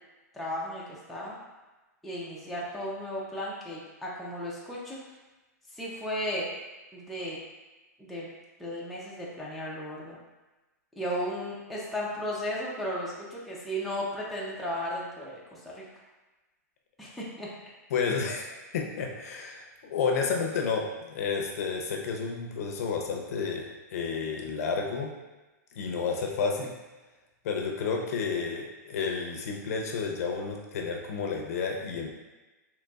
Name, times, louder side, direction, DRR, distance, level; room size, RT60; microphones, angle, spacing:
voice 1, 0.3-1.4 2.0-5.0 5.7-6.5 6.9-7.4 8.0-8.3 8.6-10.2 11.0-15.9 17.0-17.5, equal, ahead, -7 dB, 0.5 m, -35 dB
voice 2, 17.9-25.1 25.7-26.7 27.4-32.2, left 5 dB, 60° left, 1 dB, 0.6 m, -31 dB
3.9 x 2.9 x 2.3 m, 1.1 s
hypercardioid pair, 155°, 9 cm